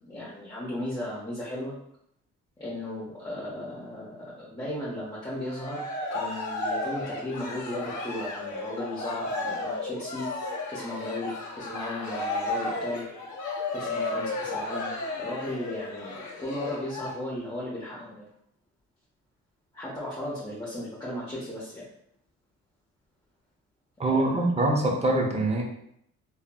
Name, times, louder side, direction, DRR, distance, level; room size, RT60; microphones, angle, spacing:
voice 1, 0.0-1.7 2.6-13.1 13.7-14.9 15.2-18.3 19.7-21.9 24.1-24.4, left 1 dB, 15° left, -8 dB, 0.8 m, -36 dB
Cheering, 5.3-17.1, left 2 dB, 70° left, 0.7 m, -33 dB
voice 2, 24.0-25.6, right 2 dB, 20° right, 0 dB, 0.6 m, -24 dB
3.3 x 2.0 x 2.2 m, 0.73 s
cardioid pair, 90°, 30 cm